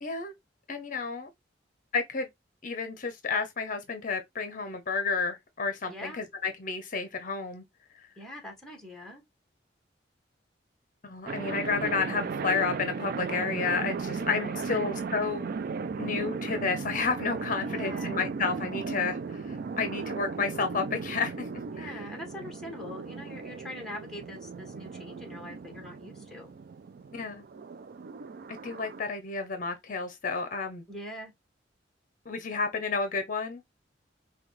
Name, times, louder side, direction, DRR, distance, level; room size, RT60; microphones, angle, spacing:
voice 1, 0.0-0.3 0.7-1.3 1.9-2.3 2.6-7.6 11.0-15.5 16.0-19.2 19.5-21.5 21.8-22.0 27.1-27.4 28.5-30.8 32.3-33.6, left 4 dB, 50° left, 0.7 m, -31 dB
voice 2, 5.9-6.2 8.2-9.2 14.4-14.8 17.6-18.2 21.7-26.5 30.9-31.3, left 1 dB, 5° left, 1.4 m, -43 dB
sound 1, 11.3-29.0, right 4 dB, 55° right, 0.4 m, -36 dB
5.7 x 2.3 x 3.1 m
head